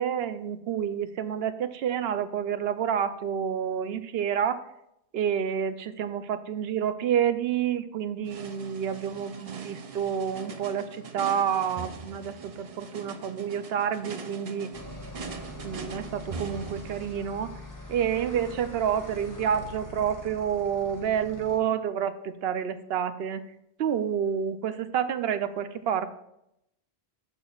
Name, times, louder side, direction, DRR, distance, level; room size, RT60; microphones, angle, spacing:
voice 1, 0.0-4.6 5.1-14.7 15.6-17.5 17.9-23.4 23.8-26.1, right 8 dB, 75° right, 11 dB, 0.8 m, -29 dB
sound 1, 8.3-17.2, right 4 dB, 45° right, 0.6 m, -42 dB
sound 2, 14.7-21.6, left 1 dB, 20° left, 1.2 m, -43 dB
12.5 x 6.1 x 2.4 m, 0.80 s
omnidirectional pair, 1.1 m